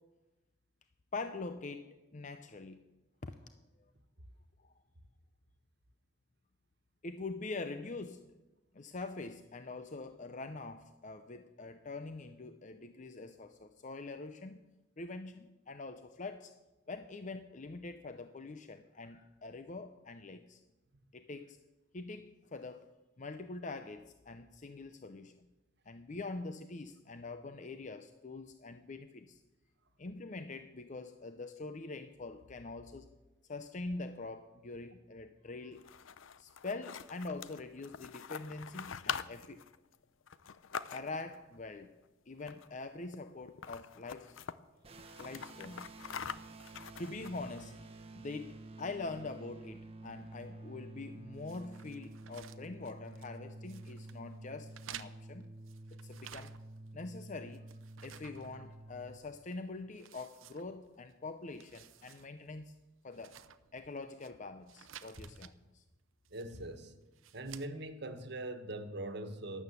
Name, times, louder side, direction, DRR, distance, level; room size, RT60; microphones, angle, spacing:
voice 1, 1.1-2.8 3.2-3.4 4.6-4.7 7.0-8.3 8.7-14.6 15.0-16.5 16.9-20.6 21.1-21.6 21.9-22.9 23.2-25.5 25.9-29.4 30.0-33.1 33.5-35.9 36.4-39.6 40.9-41.9 42.3-44.4 45.2-45.9 47.0-47.8 48.1-55.5 56.0-56.5 56.9-57.7 58.0-62.7 63.0-63.4 63.7-65.8, left 3 dB, 40° left, 9 dB, 0.6 m, -44 dB
sound 1, 35.7-41.4 42.4-42.8 43.1-43.2 43.5-44.6 45.0-47.6, left 7 dB, 80° left, 0.6 m, -44 dB
sound 2, 44.8-59.2, right 2 dB, 30° right, 1.0 m, -50 dB
sound 3, 51.4-53.4 53.7-54.2 54.7-56.9 57.2-59.1 59.5-59.6 60.0-61.1 61.5-62.3 62.6-62.7 63.1-64.3 64.7-65.5 66.2-66.7 67.1-67.7, right 10 dB, 85° right, 0.7 m, -54 dB
voice 2, 66.3-66.9 67.3-69.6, right 1 dB, 55° right, 8 dB, 1.4 m, -41 dB
12.5 x 11.0 x 8.1 m, 1.1 s
head